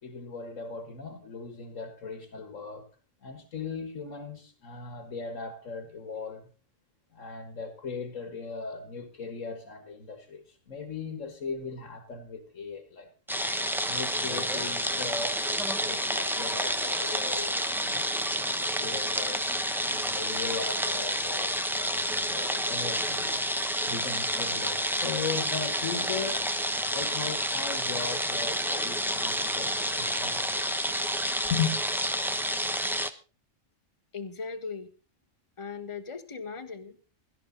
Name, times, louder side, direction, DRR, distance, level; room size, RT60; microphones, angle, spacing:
voice 1, 0.0-3.0 3.2-6.5 7.1-13.1 13.8-18.1 18.6-23.4 23.9-26.5 26.9-30.7 31.4-31.8, left 5 dB, 80° left, 1.9 m, -38 dB
sound 1, 13.3-33.1, equal, ahead, 0.8 m, -29 dB
voice 2, 34.1-34.9 35.6-37.0, left 5 dB, 25° left, 1.2 m, -38 dB
17.0 x 12.0 x 3.9 m
omnidirectional pair, 1.3 m